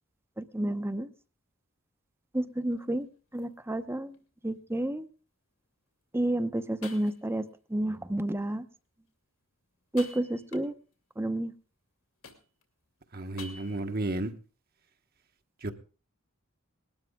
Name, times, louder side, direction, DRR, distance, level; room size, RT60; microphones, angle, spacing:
voice 1, 0.4-1.1 2.3-3.1 3.3-4.2 4.4-5.1 6.1-8.6 9.9-10.7 11.2-11.5, right 1 dB, 10° right, 12 dB, 0.8 m, -30 dB
sound 1, 2.5-2.8 3.4-3.5 4.1-4.2 6.2-6.3 6.8-7.5 9.8-11.0 12.2-12.8 13.4-14.0, left 3 dB, 75° left, 2.7 m, -48 dB
voice 2, 13.1-14.3 15.6-15.7, right 2 dB, 50° right, 7 dB, 1.3 m, -32 dB
20.0 x 12.5 x 3.6 m, 0.36 s
head